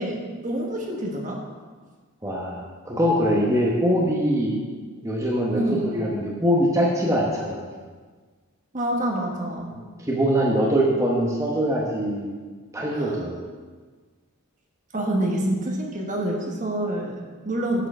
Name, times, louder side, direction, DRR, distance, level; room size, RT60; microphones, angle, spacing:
voice 1, 0.0-1.4 5.5-6.0 8.7-9.7 12.9-13.3 14.9-17.9, right 1 dB, 35° right, 0 dB, 1.1 m, -27 dB
voice 2, 2.2-4.6 5.0-7.7 9.7-12.3 12.7-13.4, equal, 15° right, -4 dB, 1.0 m, -23 dB
8.9 x 4.7 x 6.1 m, 1.5 s
head